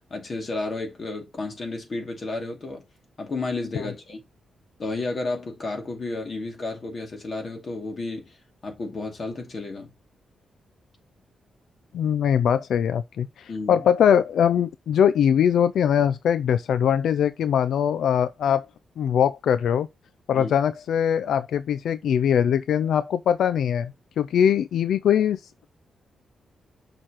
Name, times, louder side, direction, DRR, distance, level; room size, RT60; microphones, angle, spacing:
voice 1, 0.1-2.9 3.2-4.2 4.8-8.4 8.6-9.9 13.5-13.9 20.3-20.5, left 3 dB, 35° left, 2.4 m, -32 dB
voice 2, 11.9-18.7 19.0-19.9 20.3-25.4, left 8 dB, 75° left, 0.3 m, -22 dB
6.5 x 6.0 x 3.0 m
wide cardioid pair, 140°, 0 cm